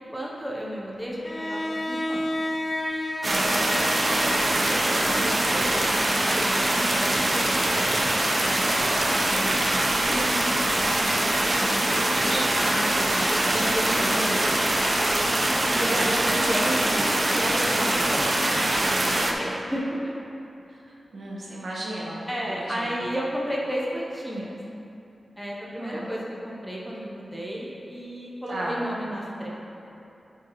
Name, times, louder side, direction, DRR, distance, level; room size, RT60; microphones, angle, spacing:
voice 1, 0.0-2.3 3.5-8.2 8.7-11.7 12.1-13.2 13.5-14.6 15.6-18.3 18.8-20.1 22.3-24.6 25.4-29.5, equal, 5° right, -4 dB, 0.8 m, -33 dB
Bowed string instrument, 1.2-6.3, left 1 dB, 20° left, 0.4 m, -32 dB
sound 1, 3.2-19.3, right 1 dB, 35° right, 0.6 m, -23 dB
voice 2, 3.2-3.9 6.7-7.0 8.9-9.3 12.1-12.7 13.9-14.3 15.9-16.1 17.7-18.2 20.7-20.8 21.1-22.9 25.8-26.1 28.5-28.8, right 1 dB, 60° right, -5 dB, 1.3 m, -36 dB
11.5 x 4.8 x 3.0 m, 2.8 s
wide cardioid pair, 155°, 0 cm